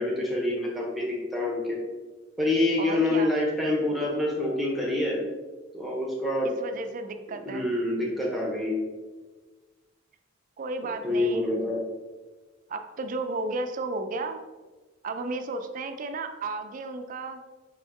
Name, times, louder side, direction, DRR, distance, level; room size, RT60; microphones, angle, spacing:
voice 1, 0.0-1.8 2.4-5.2 5.7-6.5 7.4-8.8 11.0-11.8, left 2 dB, ahead, -3 dB, 0.7 m, -26 dB
voice 2, 2.8-3.3 6.6-7.7 10.6-11.7 12.7-14.4 15.0-17.4, right 3 dB, 40° right, 7 dB, 0.3 m, -33 dB
5.3 x 2.6 x 3.4 m, 1.3 s
head